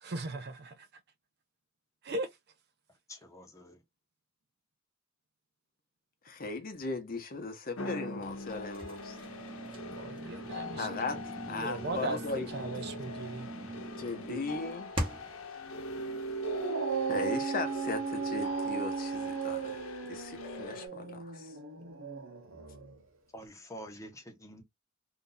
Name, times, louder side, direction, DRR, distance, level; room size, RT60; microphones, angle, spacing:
voice 1, 0.0-0.7 2.0-2.3 10.0-11.0 11.5-13.5 14.3-14.4, right 2 dB, 50° right, 0.5 m, -38 dB
voice 2, 3.1-3.8 23.3-24.6, equal, 15° left, 0.9 m, -47 dB
voice 3, 6.2-9.2 10.8-11.2 11.5-12.5 14.0-14.9 17.1-21.5, left 3 dB, 45° left, 0.9 m, -38 dB
sound 1, 7.8-20.9, equal, 85° left, 0.8 m, -41 dB
sound 2, 8.7-15.4, right 1 dB, 25° right, 1.1 m, -41 dB
Dog, 16.3-23.0, right 5 dB, 80° right, 0.8 m, -36 dB
2.7 x 2.5 x 3.8 m
head